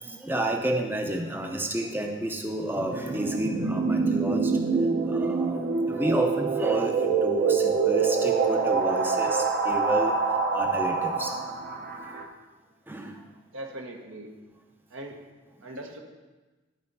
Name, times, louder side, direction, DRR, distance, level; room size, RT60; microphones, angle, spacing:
voice 1, 0.0-4.5 5.1-10.1 10.5-11.3 12.9-13.2, right 1 dB, 10° right, 3 dB, 0.6 m, -31 dB
sound 1, 2.8-12.2, right 4 dB, 50° right, 0.9 m, -25 dB
voice 2, 13.5-14.3 14.9-15.2 15.6-16.0, right 1 dB, 80° right, 1 dB, 1.5 m, -40 dB
12.5 x 4.4 x 5.5 m, 1.2 s
head